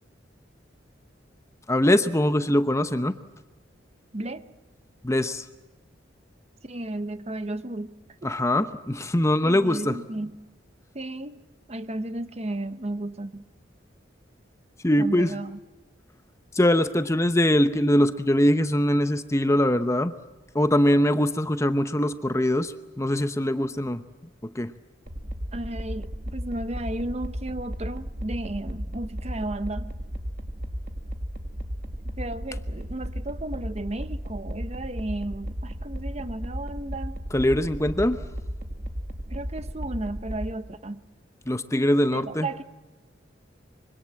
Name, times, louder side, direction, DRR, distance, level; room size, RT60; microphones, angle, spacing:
voice 1, 1.7-3.2 5.0-5.4 8.2-10.0 14.8-15.3 16.5-20.1 20.5-24.0 24.5-24.7 37.3-38.2 41.5-42.5, left 1 dB, 15° left, 0.9 m, -22 dB
voice 2, 4.1-4.4 6.6-8.4 9.4-10.4 10.9-11.4 11.7-13.4 15.0-15.6 25.5-29.9 32.2-37.2 39.3-41.0 42.1-42.6, right 1 dB, 35° right, 1.1 m, -34 dB
sound 1, 25.1-40.5, equal, 50° right, 2.1 m, -35 dB
25.5 x 24.5 x 7.6 m
head